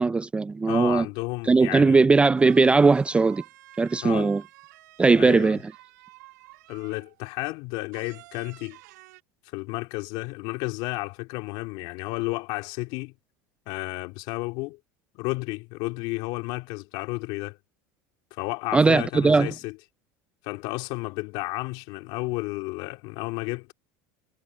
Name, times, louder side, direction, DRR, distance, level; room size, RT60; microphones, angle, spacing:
voice 1, 0.0-1.1 1.5-3.4 3.8-4.4 5.0-5.6 18.7-19.5, right 4 dB, 10° right, 0.4 m, -19 dB
voice 2, 0.7-2.1 4.0-4.3 5.1-5.6 6.7-8.8 9.5-13.1 13.7-14.8 15.1-17.6 18.3-19.8 20.4-23.7, left 24 dB, 65° left, 3.1 m, -32 dB
sound 1, 2.0-2.1 2.4-7.2 7.9-9.2, right 18 dB, 85° right, 2.3 m, -50 dB
supercardioid pair, 125°, 9 cm